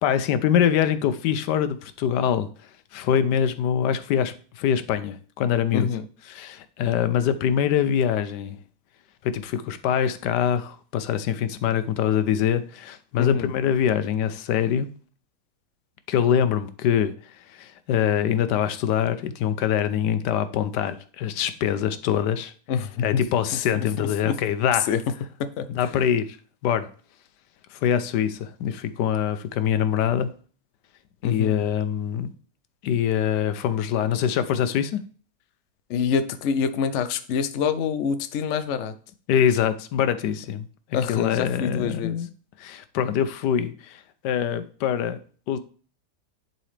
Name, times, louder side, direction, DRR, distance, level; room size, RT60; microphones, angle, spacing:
voice 1, 0.0-2.5 2.9-5.9 6.3-8.6 9.2-14.9 16.1-22.5 23.0-24.9 25.7-26.3 26.6-26.9 27.7-30.3 31.2-32.3 32.8-35.0 39.3-40.7 41.1-42.3 42.6-45.2 45.5-45.6, left 9 dB, 80° left, 12 dB, 1.2 m, -24 dB
voice 2, 5.7-6.0 13.2-13.5 22.7-23.2 23.8-24.4 24.9-25.0 25.4-25.7 31.2-31.6 35.9-38.9 40.9-42.2, left 6 dB, 60° left, 10 dB, 0.7 m, -26 dB
10.5 x 4.0 x 3.3 m, 0.42 s
omnidirectional pair, 1.8 m